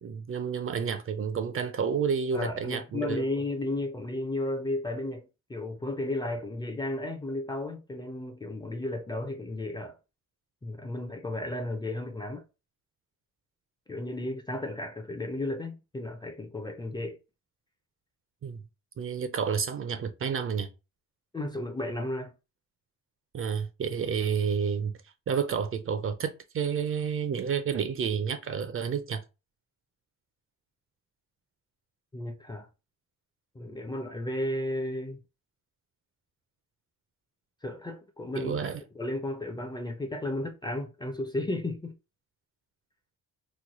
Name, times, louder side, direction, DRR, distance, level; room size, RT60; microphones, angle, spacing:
voice 1, 0.0-3.2 18.4-18.6 19.0-20.7 23.3-24.9 25.3-29.2 38.3-38.8, right 6 dB, 45° right, 0.4 m, -30 dB
voice 2, 2.3-10.0 10.6-12.4 13.9-17.2 21.3-22.3 32.1-32.7 33.6-35.2 37.6-38.5 39.0-41.9, left 1 dB, 15° left, 0.4 m, -33 dB
3.1 x 2.1 x 4.0 m
cardioid pair, 120°, 32 cm